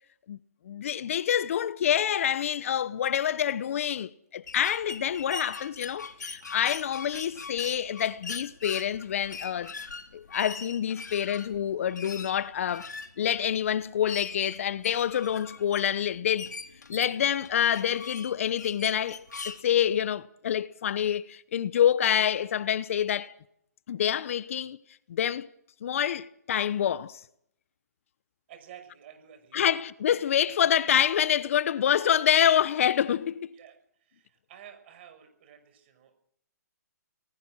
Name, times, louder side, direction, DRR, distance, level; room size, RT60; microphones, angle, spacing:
voice 1, 0.6-9.7 10.1-12.9 13.2-16.5 16.9-23.3 23.9-24.8 25.1-25.5 25.8-27.2 29.5-33.5, left 9 dB, 50° left, 0.9 m, -27 dB
sound 1, 4.5-19.6, left 4 dB, 90° left, 3.6 m, -42 dB
voice 2, 28.5-29.8 33.5-36.1, right 9 dB, 40° right, 6.0 m, -51 dB
27.5 x 19.5 x 6.4 m
hypercardioid pair, 155°, 9 cm